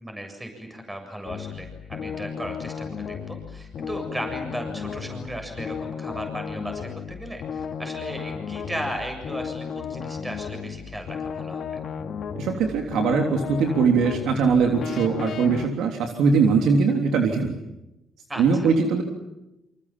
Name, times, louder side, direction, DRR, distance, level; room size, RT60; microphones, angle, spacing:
voice 1, 0.0-11.8 18.3-18.7, right 1 dB, 15° right, 4 dB, 7.4 m, -36 dB
sound 1, 1.2-15.7, left 7 dB, 60° left, 2.7 m, -34 dB
voice 2, 12.4-17.6 18.4-19.0, right 5 dB, 85° right, 3 dB, 3.3 m, -21 dB
28.5 x 27.0 x 7.5 m, 0.93 s
cardioid pair, 90°, 0 cm